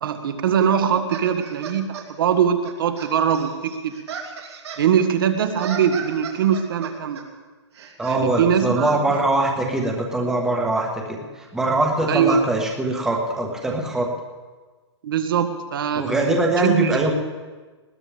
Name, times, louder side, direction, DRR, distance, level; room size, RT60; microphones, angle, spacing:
voice 1, 0.0-3.9 4.8-7.2 8.0-9.0 12.1-12.4 15.0-16.1 16.6-17.0, right 8 dB, 50° right, 7 dB, 1.6 m, -21 dB
sound 1, 1.1-2.1 2.6-4.9 5.4-7.2 7.7-8.2, right 6 dB, 65° right, 3.0 m, -36 dB
voice 2, 8.0-14.1 15.9-17.1, right 2 dB, 5° right, 0 dB, 1.4 m, -22 dB
20.0 x 18.0 x 3.5 m, 1.3 s
hypercardioid pair, 170°, 15 cm